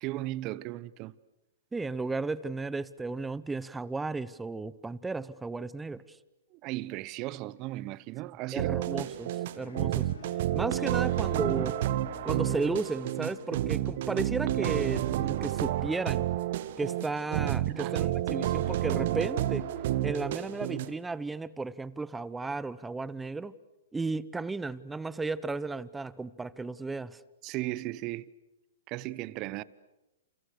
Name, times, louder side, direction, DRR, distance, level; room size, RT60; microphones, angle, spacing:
voice 1, 0.0-1.1 6.5-8.8 17.7-18.0 27.4-28.3 28.9-29.6, right 17 dB, 35° right, 0.9 m, -36 dB
voice 2, 1.7-6.0 8.5-9.3 9.6-10.1 10.5-11.7 12.2-16.3 16.8-19.7 20.0-23.5 23.9-27.2, right 3 dB, 10° right, 0.9 m, -34 dB
sound 1, 8.6-20.9, right 13 dB, 55° right, 1.3 m, -30 dB
Bowed string instrument, 9.5-13.7, left 8 dB, 80° left, 3.1 m, -51 dB
29.5 x 29.0 x 6.6 m
hypercardioid pair, 125°, 0 cm